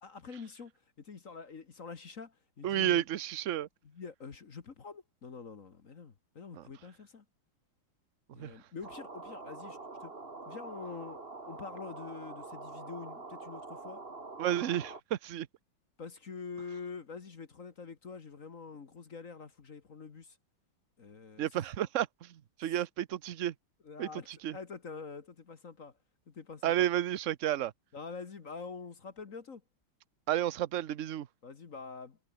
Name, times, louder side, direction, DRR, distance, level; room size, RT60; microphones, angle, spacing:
voice 1, 0.0-0.7 1.0-3.0 3.9-7.2 8.3-10.1 10.5-14.0 16.0-20.4 21.0-21.5 23.8-24.3 24.5-25.9 26.3-26.9 27.9-29.6 31.4-32.2, left 5 dB, 45° left, 1.8 m, -46 dB
voice 2, 2.6-3.7 6.5-6.7 8.4-8.5 14.4-15.5 21.4-23.5 24.0-24.6 26.6-27.7 30.3-31.3, right 12 dB, 55° right, 0.9 m, -32 dB
sound 1, 8.8-15.0, right 3 dB, 30° right, 2.8 m, -45 dB
omnidirectional pair, 2.1 m